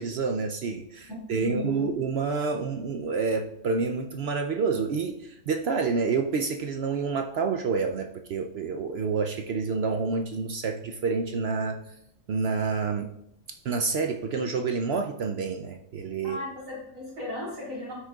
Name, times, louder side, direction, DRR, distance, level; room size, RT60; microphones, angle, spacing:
voice 1, 0.0-11.8 12.3-13.1 13.6-16.4, right 4 dB, 60° right, 4 dB, 0.7 m, -28 dB
voice 2, 1.3-1.8 16.2-17.9, left 1 dB, 75° right, -7 dB, 3.9 m, -35 dB
12.5 x 6.2 x 2.3 m, 0.75 s
omnidirectional pair, 1.4 m